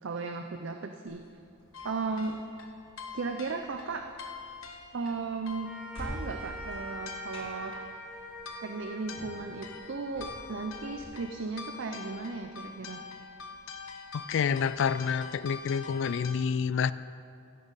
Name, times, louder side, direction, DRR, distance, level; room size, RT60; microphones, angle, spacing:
voice 1, 0.0-1.2 1.8-2.4 3.1-4.0 4.9-5.7 6.0-7.7 8.6-13.0, right 4 dB, 60° right, 5 dB, 0.5 m, -36 dB
sound 1, 1.1-11.1, equal, 25° left, 2.5 m, -48 dB
sound 2, 1.7-16.3, left 5 dB, 80° left, 0.9 m, -45 dB
sound 3, 5.6-12.1, equal, 5° right, 1.3 m, -45 dB
voice 2, 14.1-16.9, left 6 dB, 60° left, 16 dB, 0.3 m, -28 dB
16.0 x 8.7 x 4.1 m, 2.5 s
head